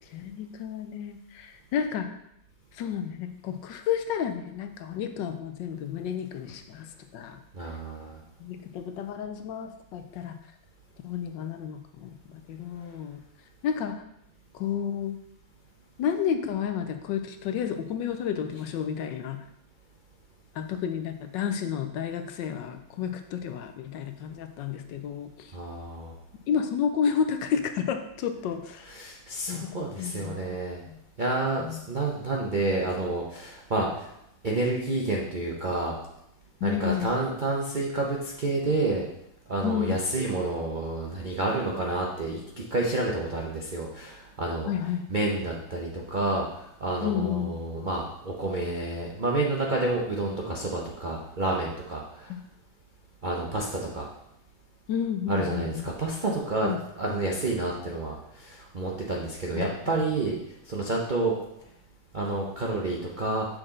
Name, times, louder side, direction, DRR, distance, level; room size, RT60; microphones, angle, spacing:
voice 1, 0.0-2.2 2.7-7.7 8.4-10.4 11.0-13.2 13.6-14.0 14.5-15.2 16.0-19.4 20.5-25.6 26.5-28.9 29.5-30.6 30.9-31.0 31.6-31.8 36.6-37.1 39.6-40.0 44.7-45.0 47.0-47.5 52.3-52.4 54.9-55.9 56.6-56.8 59.5-60.0, left 8 dB, 75° left, 7 dB, 1.2 m, -31 dB
voice 2, 7.5-8.2 25.5-26.1 28.9-30.8 31.2-34.1 34.4-36.0 36.6-39.1 39.5-44.7 45.1-52.3 53.2-54.1 55.3-56.7 57.0-60.4 60.7-61.3 62.1-63.5, right 2 dB, 65° right, -2 dB, 0.4 m, -29 dB
6.4 x 6.2 x 3.7 m, 0.80 s
omnidirectional pair, 2.1 m